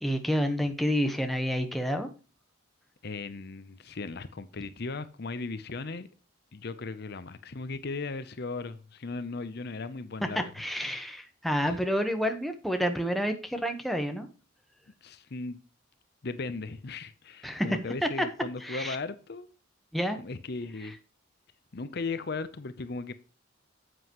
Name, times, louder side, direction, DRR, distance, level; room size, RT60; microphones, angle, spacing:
voice 1, 0.0-2.1 10.3-14.3 17.4-17.8 18.6-19.0 19.9-20.2, equal, ahead, 1.1 m, -29 dB
voice 2, 3.0-6.1 6.5-10.5 11.6-11.8 15.0-15.6 16.2-19.5 20.2-21.0 21.7-23.1, left 3 dB, 55° left, 0.7 m, -37 dB
9.8 x 7.9 x 3.1 m
head